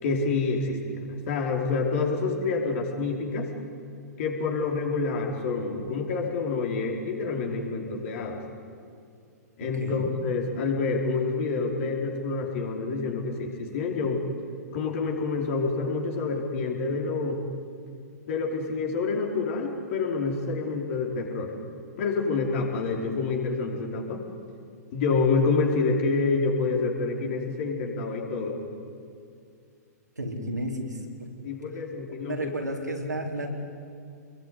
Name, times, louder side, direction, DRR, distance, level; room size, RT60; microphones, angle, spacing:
voice 1, 0.0-3.5 4.2-8.4 9.6-14.2 14.7-17.4 18.3-21.5 22.0-24.2 24.9-28.6 31.4-32.5, left 4 dB, 50° left, 1 dB, 5.0 m, -27 dB
voice 2, 30.2-31.0 32.3-33.5, right 1 dB, 90° right, 0 dB, 4.4 m, -32 dB
27.5 x 22.0 x 9.8 m, 2.4 s
figure-of-eight pair, 115°, 9 cm